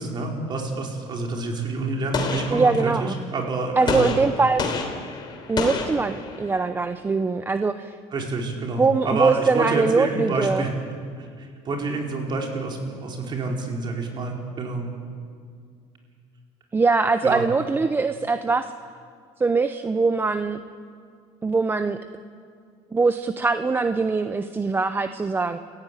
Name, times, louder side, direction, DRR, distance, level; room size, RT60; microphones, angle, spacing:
voice 1, 0.0-4.1 8.1-10.7 11.2-14.9 17.2-17.5, right 3 dB, 35° right, 1 dB, 4.6 m, -28 dB
Gunshot gunfire, 2.1-3.2 3.9-6.6, left 4 dB, 35° left, 3.3 m, -29 dB
voice 2, 2.5-3.2 3.8-4.7 5.5-7.9 8.8-10.6 16.7-18.7 19.4-20.6 21.4-22.0 22.9-25.6, right 4 dB, 15° right, 10 dB, 0.7 m, -22 dB
28.5 x 15.5 x 9.2 m, 2.2 s
cardioid pair, 135°, 13 cm